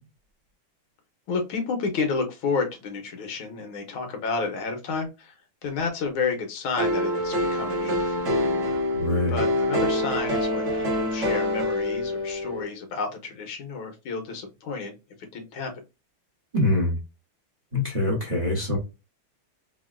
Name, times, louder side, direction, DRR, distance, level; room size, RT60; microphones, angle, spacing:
voice 1, 1.3-5.3 5.6-8.3 9.3-15.7, left 4 dB, 80° left, 1.7 m, -31 dB
sound 1, 6.8-12.7, left 1 dB, 45° right, 1.1 m, -26 dB
voice 2, 8.9-9.4 16.5-17.0 17.7-18.8, left 1 dB, 30° right, 0.7 m, -24 dB
3.8 x 2.2 x 2.3 m
omnidirectional pair, 2.3 m